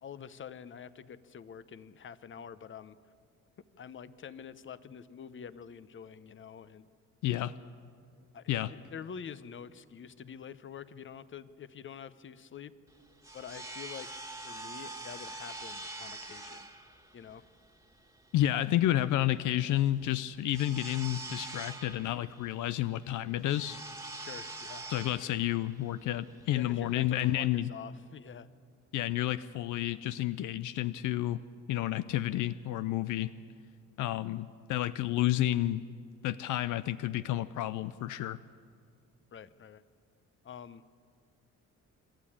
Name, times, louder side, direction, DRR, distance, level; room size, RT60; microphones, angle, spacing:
voice 1, 0.0-3.0 3.8-6.9 8.3-12.7 13.3-14.2 14.4-16.7 17.1-17.4 24.2-24.9 26.5-28.5 39.3-39.8 40.4-40.8, left 7 dB, 40° left, 15 dB, 0.8 m, -46 dB
voice 2, 7.2-7.5 8.5-8.7 18.3-23.8 24.9-27.7 28.9-31.4 31.7-33.3 34.0-35.8 36.2-38.4, left 13 dB, 80° left, 15 dB, 0.5 m, -30 dB
sound 1, 12.9-27.4, right 2 dB, 10° right, 1.7 m, -45 dB
26.5 x 12.5 x 8.6 m, 2.3 s
cardioid pair, 90°, 30 cm